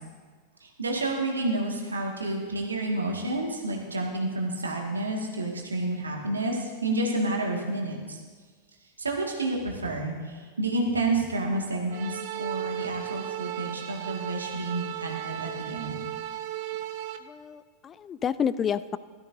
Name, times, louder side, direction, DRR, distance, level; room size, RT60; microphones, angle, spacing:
voice 1, 0.6-8.2 9.0-16.0, right 2 dB, 75° right, -1 dB, 2.1 m, -30 dB
sound 1, 11.9-17.2, right 12 dB, 45° right, 0.8 m, -35 dB
voice 2, 17.2-19.0, left 8 dB, 25° left, 16 dB, 0.4 m, -29 dB
17.0 x 13.0 x 2.8 m, 1.5 s
figure-of-eight pair, 90°, 0 cm